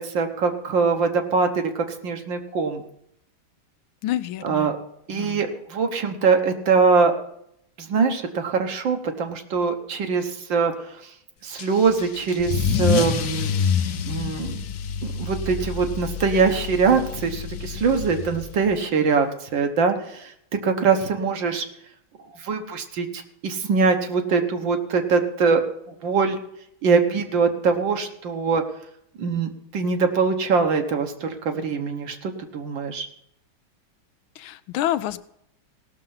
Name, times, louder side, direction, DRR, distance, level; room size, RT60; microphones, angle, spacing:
voice 1, 0.0-2.8 4.4-4.8 5.1-7.2 7.8-11.0 11.4-13.8 14.1-14.6 15.0-21.7 22.4-25.6 25.9-26.4 26.8-28.7 29.2-33.1, right 5 dB, 65° right, 6 dB, 1.8 m, -23 dB
voice 2, 4.0-4.7 5.1-5.4 34.4-35.2, left 12 dB, 80° left, 12 dB, 1.4 m, -28 dB
Car / Engine starting / Accelerating revving vroom, 11.6-18.8, left 7 dB, 65° left, 1.0 m, -27 dB
17.5 x 6.6 x 5.7 m, 0.75 s
omnidirectional pair, 2.3 m